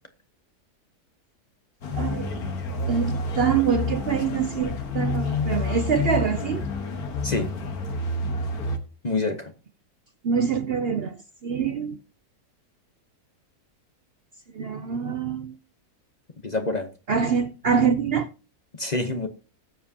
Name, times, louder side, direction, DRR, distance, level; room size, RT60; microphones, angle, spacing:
sound 1, 1.8-8.8, left 3 dB, 75° left, 1.8 m, -29 dB
voice 1, 1.9-2.4 2.9-6.6 10.2-12.0 14.5-15.6 17.1-18.3, right 6 dB, 55° right, 0.7 m, -25 dB
voice 2, 9.0-9.5 16.4-16.9 18.7-19.3, left 2 dB, 30° left, 0.9 m, -27 dB
19.0 x 7.4 x 2.8 m
omnidirectional pair, 1.6 m